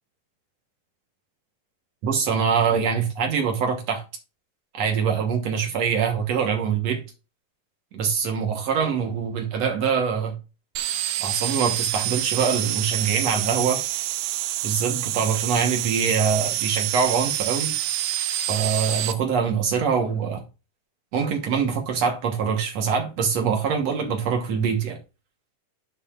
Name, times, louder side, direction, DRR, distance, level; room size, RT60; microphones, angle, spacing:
voice 1, 2.0-4.0 4.7-7.0 7.9-10.4 11.2-13.8 14.6-17.7 18.5-20.4 21.1-25.0, right 6 dB, 60° right, 1.8 m, -24 dB
sound 1, 10.8-19.1, right 13 dB, 80° right, 1.9 m, -27 dB
10.0 x 6.6 x 2.5 m
omnidirectional pair, 4.5 m